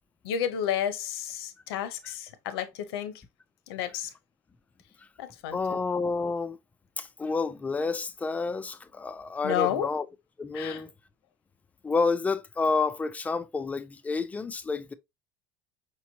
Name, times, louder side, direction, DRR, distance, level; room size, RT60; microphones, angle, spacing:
voice 1, 0.2-3.2 3.7-4.1 5.2-5.8 9.4-9.9 10.5-10.8, left 10 dB, 85° left, 0.8 m, -31 dB
voice 2, 5.5-6.6 7.0-10.1 10.4-10.9 11.8-14.9, left 4 dB, 10° left, 0.4 m, -29 dB
4.9 x 3.1 x 2.7 m
supercardioid pair, 135°, 13 cm